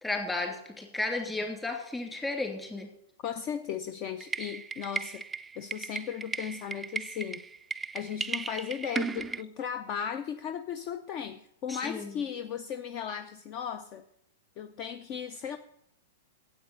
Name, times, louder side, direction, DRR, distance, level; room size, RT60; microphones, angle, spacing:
voice 1, 0.0-2.9 11.7-12.1, left 2 dB, 10° left, 2 dB, 2.8 m, -33 dB
voice 2, 3.2-5.2 5.6-7.4 7.9-14.0 14.6-15.6, left 8 dB, 40° left, 10 dB, 0.6 m, -36 dB
sound 1, 4.2-9.4, right 4 dB, 10° right, 0.4 m, -36 dB
10.0 x 8.0 x 8.5 m, 0.75 s
figure-of-eight pair, 100°, 0 cm